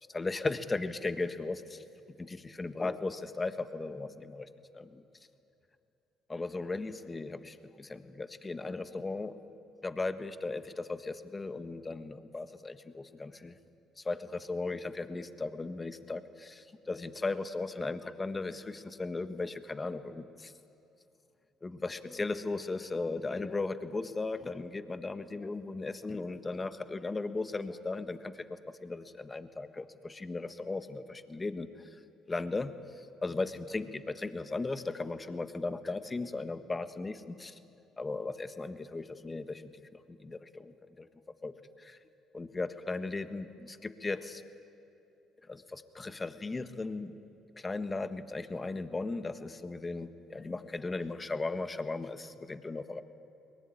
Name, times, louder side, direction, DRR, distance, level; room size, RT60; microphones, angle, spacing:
voice 1, 0.1-1.8 2.2-4.5 4.7-5.0 6.3-9.4 9.8-13.6 14.0-20.5 21.6-31.9 32.3-37.6 38.0-41.1 41.4-42.0 42.3-44.4 45.5-47.2 47.5-53.0, left 3 dB, 25° left, 11 dB, 1.5 m, -37 dB
22.5 x 19.5 x 9.9 m, 2.8 s
supercardioid pair, 65°, 0 cm